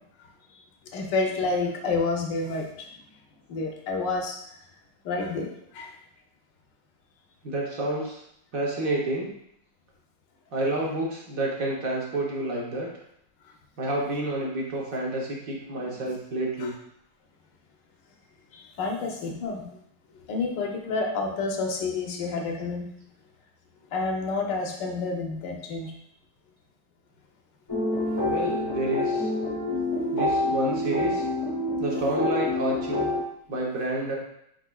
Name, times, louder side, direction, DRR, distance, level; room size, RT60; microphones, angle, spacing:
voice 1, 0.9-2.7 3.5-4.4 5.0-5.5 5.7-5.9 16.6-16.7 18.8-19.7 20.3-22.9 23.9-25.9 28.4-28.5, left 3 dB, 85° left, 2 dB, 1.4 m, -29 dB
voice 2, 7.4-8.2 8.5-9.3 10.5-12.9 13.8-16.7 28.2-29.3 30.1-31.2 31.8-33.1 33.5-34.1, right 1 dB, 55° right, -3 dB, 1.2 m, -29 dB
sound 1, 27.7-33.2, left 2 dB, 20° left, 0.6 m, -27 dB
4.7 x 4.2 x 2.3 m, 0.73 s
omnidirectional pair, 1.9 m